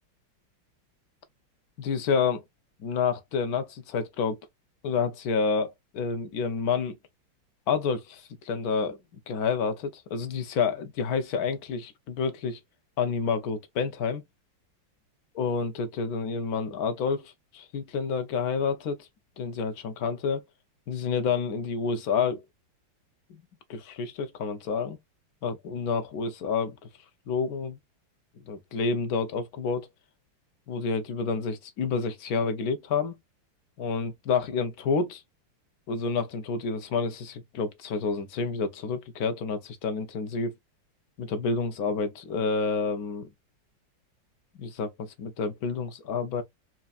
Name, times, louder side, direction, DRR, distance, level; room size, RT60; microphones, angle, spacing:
voice 1, 1.8-2.4 2.8-4.4 4.8-6.9 7.7-9.0 9.3-12.6 13.0-14.2 15.4-19.1 19.4-20.4 20.9-22.4 23.3-23.4 23.7-25.0 25.4-26.8 27.3-27.8 28.5-29.9 30.7-33.1 33.8-35.2 35.9-40.5 41.2-43.3 44.6-46.4, left 5 dB, 60° left, 1.2 m, -29 dB
4.5 x 2.7 x 2.4 m
omnidirectional pair, 2.1 m